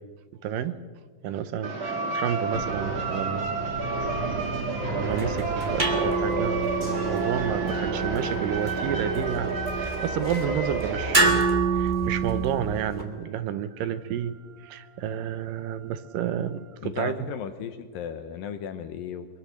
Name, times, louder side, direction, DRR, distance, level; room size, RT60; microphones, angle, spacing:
voice 1, 0.4-0.7 1.2-3.8 5.0-14.4 14.6-17.1, right 9 dB, 75° right, 12 dB, 2.3 m, -30 dB
sound 1, 1.6-11.3, right 3 dB, 35° right, 2.8 m, -30 dB
sound 2, 2.5-8.0 9.1-10.2 10.6-10.7 13.1-13.2 13.7-16.7, right 2 dB, 55° right, 2.3 m, -38 dB
sound 3, 5.0-13.0, right 4 dB, 20° right, 1.4 m, -28 dB
voice 2, 16.8-19.3, left 8 dB, 75° left, 9 dB, 2.6 m, -35 dB
23.0 x 22.0 x 6.5 m, 1.5 s
omnidirectional pair, 4.3 m